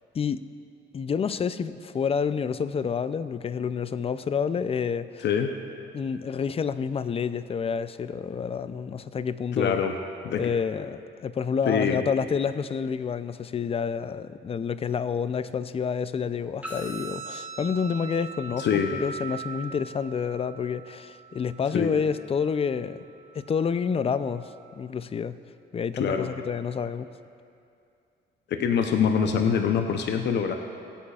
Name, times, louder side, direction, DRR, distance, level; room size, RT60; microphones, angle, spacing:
voice 1, 0.9-5.2 5.9-9.8 10.4-23.0 23.3-25.4 25.7-27.1, left 6 dB, 30° left, 14 dB, 0.4 m, -29 dB
voice 2, 9.5-9.9 10.2-10.4 11.7-12.0 18.6-18.9 21.7-22.0 26.0-26.3 28.5-30.5, left 7 dB, 60° left, 5 dB, 0.7 m, -24 dB
sound 1, 16.6-24.6, right 3 dB, 10° right, 2.5 m, -42 dB
20.5 x 8.5 x 2.4 m, 2.5 s
cardioid pair, 90°, 20 cm